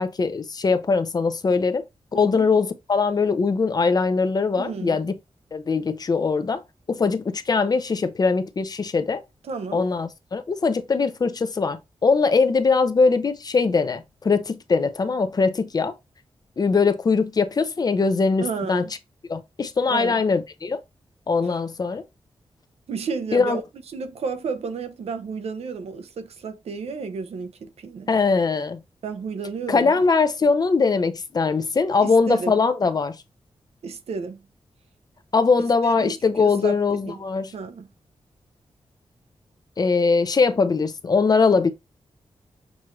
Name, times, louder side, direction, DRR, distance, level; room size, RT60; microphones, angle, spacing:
voice 1, 0.0-1.8 2.1-5.1 5.5-6.6 6.9-9.2 9.7-15.9 16.6-18.9 19.3-20.8 21.3-22.0 23.3-23.6 28.1-28.8 29.7-33.2 35.3-37.5 39.8-41.7, left 4 dB, 40° left, 0.5 m, -21 dB
voice 2, 2.1-2.5 4.6-5.0 9.5-9.9 18.4-18.9 19.9-20.2 21.4-21.6 22.9-23.6 23.9-28.1 29.0-30.0 32.0-32.5 33.8-34.5 35.8-37.2 37.5-37.9, right 5 dB, 85° right, 0.6 m, -32 dB
6.1 x 2.5 x 3.0 m
wide cardioid pair, 115°, 10 cm